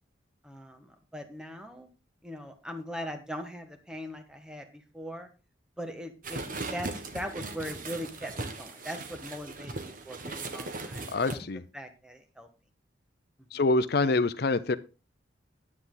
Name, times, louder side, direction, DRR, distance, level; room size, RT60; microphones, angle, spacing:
voice 1, 0.4-1.9 2.2-5.3 5.8-11.4 11.7-12.5 13.5-13.6, equal, 5° right, 7 dB, 1.3 m, -40 dB
sound 1, 6.2-11.4, right 3 dB, 45° right, 1.3 m, -38 dB
voice 2, 11.1-11.6 13.5-14.8, left 3 dB, 55° left, 11 dB, 0.6 m, -26 dB
9.7 x 9.5 x 3.9 m, 0.31 s
head